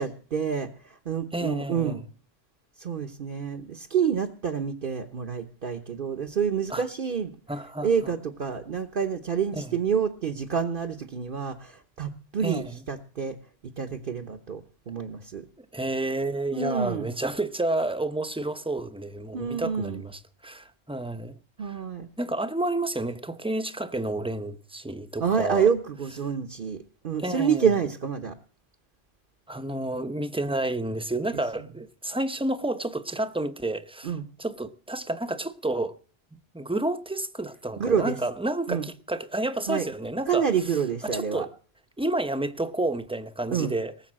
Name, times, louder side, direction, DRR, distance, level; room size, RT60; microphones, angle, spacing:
voice 1, 0.0-2.0 2.8-7.3 7.8-13.4 13.8-15.5 16.5-17.1 19.3-20.0 21.6-22.1 25.2-28.4 34.0-34.2 37.8-38.2 38.7-38.8 39.7-39.9 40.3-41.5 43.5-43.7, right 7 dB, 55° right, 1.1 m, -28 dB
voice 2, 1.3-2.0 6.7-6.8 7.5-7.9 9.5-9.8 12.4-12.8 15.6-21.8 22.2-25.7 27.2-27.7 29.5-36.0 36.3-40.8 41.0-41.5 42.0-43.9, right 2 dB, 5° right, 0.7 m, -30 dB
19.0 x 7.2 x 7.4 m
omnidirectional pair, 1.1 m